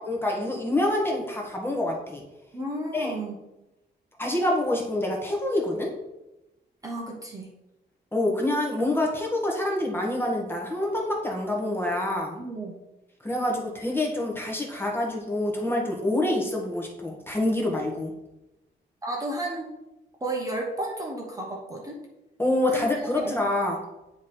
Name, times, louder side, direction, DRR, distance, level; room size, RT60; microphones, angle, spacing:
voice 1, 0.0-2.2 2.9-3.1 4.2-5.9 8.1-12.4 13.2-18.1 22.4-23.8, left 1 dB, 10° left, -1 dB, 1.2 m, -26 dB
voice 2, 2.5-3.4 6.8-7.5 12.4-12.7 19.0-19.7 20.2-22.0 22.7-22.9 23.1-23.3, right 1 dB, 20° right, -1 dB, 0.9 m, -32 dB
9.4 x 3.1 x 4.2 m, 0.96 s
wide cardioid pair, 145°, 19 cm